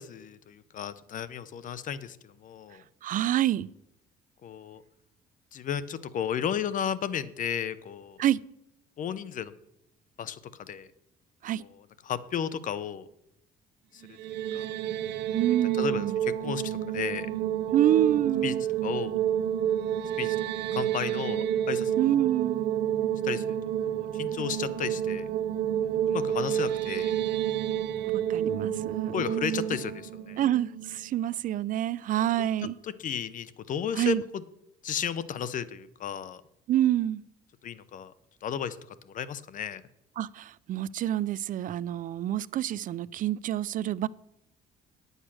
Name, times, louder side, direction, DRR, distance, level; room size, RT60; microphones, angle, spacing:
voice 1, 0.0-2.8 4.4-4.8 5.5-8.2 9.0-9.5 10.2-10.9 11.6-13.1 13.9-14.7 15.7-17.3 18.4-18.5 18.8-19.2 20.2-20.4 20.7-22.3 23.2-23.6 23.8-25.3 25.8-27.2 28.5-30.4 32.4-32.5 32.8-34.4 34.8-36.4 37.6-38.1 38.4-39.8, left 8 dB, 50° left, 0.8 m, -34 dB
voice 2, 3.0-3.7 8.2-8.4 11.4-11.6 15.3-16.2 17.7-18.6 22.0-22.6 28.1-29.8 30.4-32.7 34.0-34.2 36.7-37.2 40.2-44.1, right 12 dB, 50° right, 0.4 m, -27 dB
sound 1, 14.0-31.2, right 10 dB, 85° right, 1.0 m, -29 dB
9.9 x 8.1 x 6.2 m
cardioid pair, 110°, 17 cm